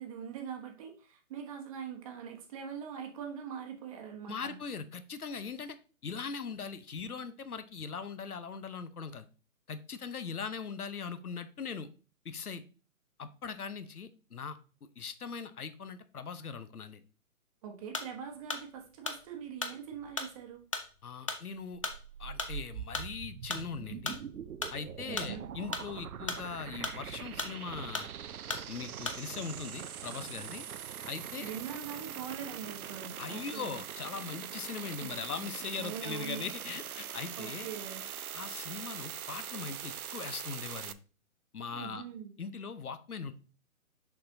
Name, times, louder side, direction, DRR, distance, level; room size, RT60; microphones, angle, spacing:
voice 1, 0.0-4.6 17.6-20.6 25.0-25.5 31.3-33.8 35.0-35.1 35.8-36.4 37.4-38.0 41.7-42.3, right 8 dB, 25° right, 4 dB, 1.0 m, -42 dB
voice 2, 4.3-5.8 6.0-9.3 9.7-11.9 12.2-12.6 13.2-14.6 15.0-17.0 21.0-21.8 22.2-24.2 24.7-28.1 28.7-30.7 31.0-31.5 33.2-37.7 38.3-41.0 41.5-42.0 42.4-43.3, left 5 dB, 80° left, 12 dB, 0.9 m, -40 dB
sound 1, 17.8-29.5, left 4 dB, 25° left, 0.5 m, -38 dB
sound 2, 21.7-40.9, right 9 dB, 75° right, 0.6 m, -43 dB
6.4 x 5.9 x 2.7 m, 0.36 s
figure-of-eight pair, 140°, 44 cm